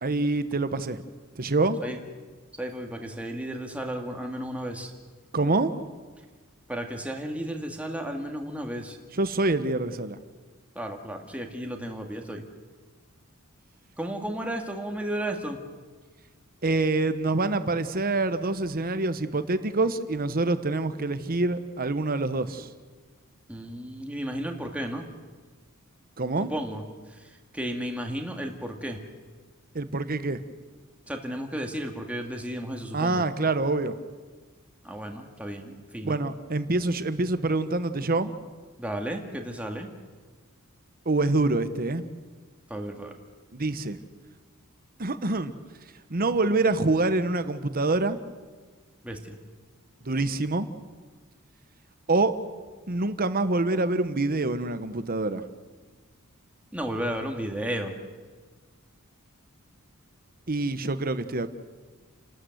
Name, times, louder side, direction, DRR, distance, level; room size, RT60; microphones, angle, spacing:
voice 1, 0.0-1.0 1.3-1.8 5.3-5.7 9.1-10.2 16.6-22.7 26.2-26.5 29.7-30.4 32.9-34.0 36.0-38.3 41.0-42.0 43.5-44.0 45.0-45.6 46.1-48.2 50.0-50.7 52.1-52.4 52.9-55.4 60.5-61.5, right 2 dB, 45° right, 11 dB, 1.1 m, -26 dB
voice 2, 2.6-4.9 6.7-9.0 10.8-12.4 14.0-15.6 23.5-25.1 26.5-26.8 27.5-29.0 31.1-33.2 34.8-36.2 38.8-39.9 42.7-43.2 49.0-49.4 56.7-57.9, right 1 dB, 5° right, 2 dB, 1.9 m, -33 dB
30.0 x 13.0 x 7.9 m, 1.4 s
head